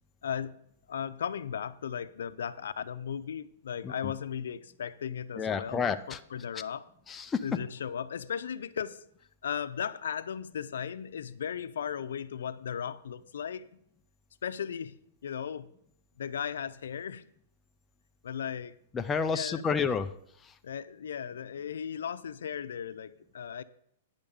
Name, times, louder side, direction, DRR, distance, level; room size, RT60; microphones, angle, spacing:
voice 1, 0.2-0.6 0.9-6.9 7.4-9.0 9.4-13.8 14.4-15.0 15.2-15.7 16.2-17.3 18.2-18.7 19.3-19.7 20.6-23.6, left 8 dB, 85° left, 13 dB, 0.5 m, -36 dB
voice 2, 5.3-6.2 7.1-7.6 18.9-20.1 20.4-20.5, left 6 dB, 15° left, 8 dB, 0.4 m, -30 dB
10.0 x 5.2 x 7.1 m, 0.70 s
hypercardioid pair, 160°, 0 cm